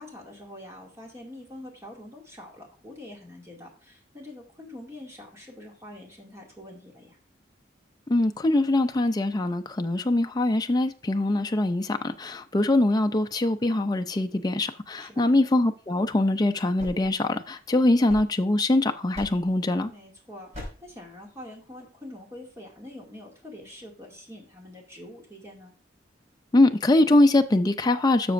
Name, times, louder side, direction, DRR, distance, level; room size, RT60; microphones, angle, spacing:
voice 1, 0.0-7.2 15.0-15.3 19.9-25.7, left 1 dB, 15° right, 2.2 m, -45 dB
voice 2, 8.1-19.9 26.5-28.3, left 2 dB, 20° left, 0.4 m, -23 dB
sound 1, 16.8-18.7 19.1-19.6 20.5-21.0, left 1 dB, 35° right, 4.5 m, -42 dB
12.0 x 6.7 x 2.5 m
head